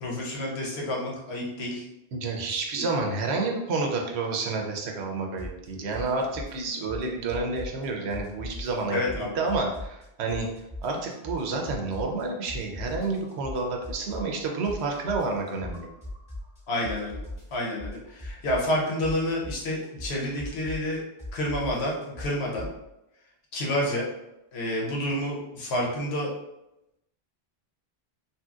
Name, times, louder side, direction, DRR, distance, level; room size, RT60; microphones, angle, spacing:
voice 1, 0.0-1.9 2.5-2.9 8.9-9.3 16.7-17.2 17.5-21.0 21.3-22.7 23.5-24.1 24.5-26.3, left 1 dB, 85° left, -3 dB, 1.1 m, -29 dB
voice 2, 2.1-10.5 10.8-15.9, right 3 dB, 85° right, 1 dB, 0.9 m, -29 dB
sound 1, 5.4-5.7 5.9-7.9 8.1-10.0 10.3-12.2 12.5-16.6 16.8-22.7, left 1 dB, 5° right, 0.9 m, -39 dB
2.9 x 2.8 x 2.3 m, 0.89 s
omnidirectional pair, 1.1 m